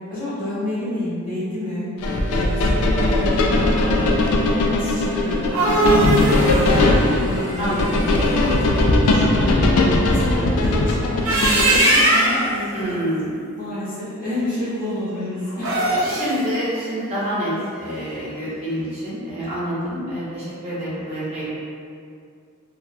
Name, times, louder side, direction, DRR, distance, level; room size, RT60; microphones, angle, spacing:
voice 1, 0.1-1.9 2.3-6.7 7.2-7.7 8.1-9.7 10.1-13.0 13.6-15.7, left 1 dB, 40° left, -10 dB, 0.7 m, -29 dB
sound 1, 2.0-12.0, left 2 dB, 85° left, 0.3 m, -19 dB
sound 2, 5.3-8.3 11.0-12.5 15.5-16.4, right 2 dB, 70° right, 0.4 m, -20 dB
voice 2, 7.6-8.0 12.7-13.3 16.1-21.5, equal, 30° right, -10 dB, 0.6 m, -27 dB
2.3 x 2.1 x 2.5 m, 2.3 s
head